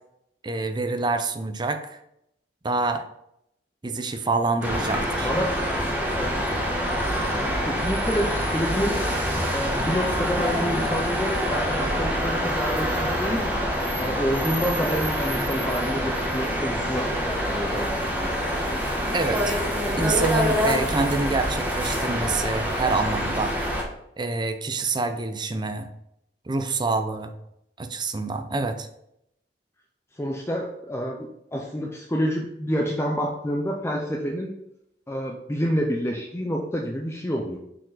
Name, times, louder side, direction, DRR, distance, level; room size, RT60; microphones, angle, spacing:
voice 1, 0.4-2.0 2.6-3.1 3.8-5.3 19.1-19.6 20.0-23.5 24.2-25.9 26.5-27.3 27.8-28.9, right 3 dB, 25° right, 8 dB, 0.5 m, -26 dB
sound 1, 4.6-23.8, equal, 10° right, 1.1 m, -26 dB
voice 2, 5.2-6.4 7.4-9.0 9.5-13.5 14.0-18.3 30.2-34.5 35.1-37.6, equal, 15° left, 0 dB, 0.6 m, -28 dB
6.3 x 4.5 x 3.9 m, 0.79 s
head